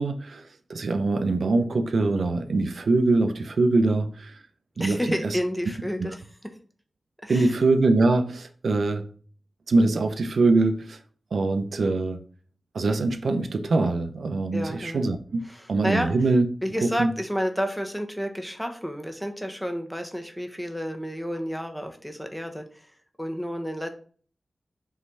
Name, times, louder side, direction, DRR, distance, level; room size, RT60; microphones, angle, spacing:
voice 1, 0.0-4.4 4.8-5.4 6.0-6.1 7.3-9.1 9.7-11.0 11.3-12.2 12.7-15.4 15.7-16.4 16.8-17.1, right 3 dB, 85° right, 0.6 m, -23 dB
voice 2, 4.8-6.2 7.2-7.5 14.5-15.0 15.5-16.1 16.6-22.9 23.2-23.9, equal, ahead, 1.2 m, -30 dB
5.7 x 3.2 x 5.4 m
wide cardioid pair, 60°, 0 cm